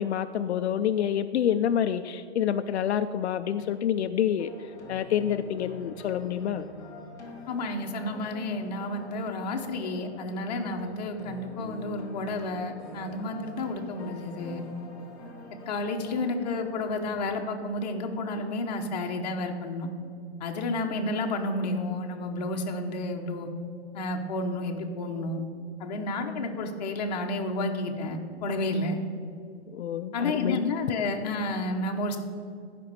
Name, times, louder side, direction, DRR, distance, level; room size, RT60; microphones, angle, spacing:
voice 1, 0.0-6.7 29.7-30.6, left 9 dB, 75° left, 9 dB, 0.5 m, -28 dB
sound 1, 4.4-17.2, left 2 dB, 10° left, 1.0 m, -46 dB
voice 2, 7.5-14.6 15.7-19.9 20.4-23.5 23.9-25.4 25.8-29.0 30.1-32.2, left 2 dB, 40° left, 3 dB, 1.0 m, -31 dB
11.5 x 5.3 x 6.7 m, 2.4 s
hypercardioid pair, 170°, 33 cm